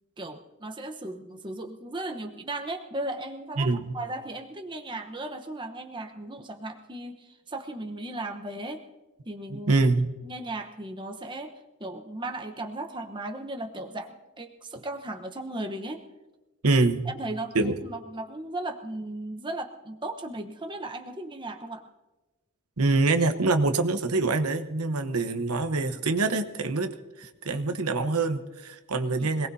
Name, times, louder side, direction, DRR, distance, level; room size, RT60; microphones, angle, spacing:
voice 1, 0.2-8.8 9.2-9.8 10.2-16.0 17.0-21.8 29.2-29.3, right 2 dB, 20° right, 4 dB, 1.0 m, -36 dB
voice 2, 3.6-4.0 9.5-10.1 16.6-17.1 17.5-17.8 22.8-29.5, right 3 dB, 85° right, 7 dB, 1.1 m, -25 dB
25.5 x 18.5 x 2.8 m, 1.1 s
head